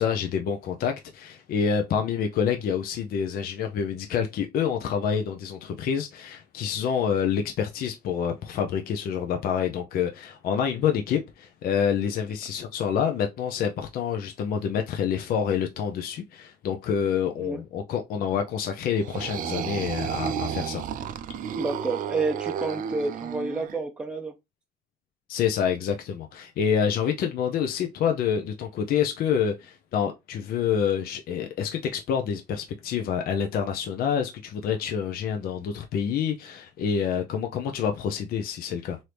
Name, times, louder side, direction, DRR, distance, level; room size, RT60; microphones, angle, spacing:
voice 1, 0.0-20.8 25.3-39.0, left 7 dB, 60° left, 0.5 m, -27 dB
sound 1, 19.0-23.8, right 8 dB, 55° right, 0.4 m, -32 dB
voice 2, 21.6-24.3, right 3 dB, 5° right, 0.6 m, -29 dB
3.3 x 2.7 x 2.9 m
cardioid pair, 110°, 17 cm